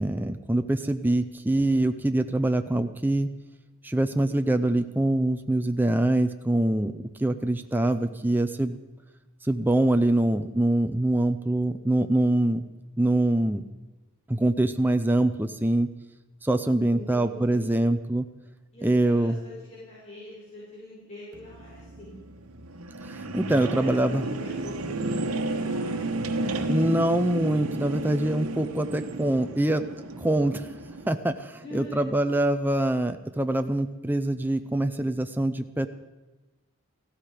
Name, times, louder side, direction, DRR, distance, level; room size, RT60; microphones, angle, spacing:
voice 1, 0.0-3.3 3.8-6.9 7.2-8.8 9.5-12.6 13.0-13.6 14.3-15.9 16.4-18.3 18.8-19.4 23.3-24.2 26.7-29.9 30.2-30.6 31.1-35.9, right 1 dB, 10° right, 7 dB, 0.6 m, -24 dB
voice 2, 7.7-8.4 16.9-17.7 18.7-22.1 23.4-27.0 31.5-32.1, left 1 dB, 30° left, -7 dB, 5.6 m, -44 dB
sound 1, 21.3-31.1, right 2 dB, 85° right, 1.4 m, -32 dB
18.0 x 15.0 x 5.1 m, 1.1 s
head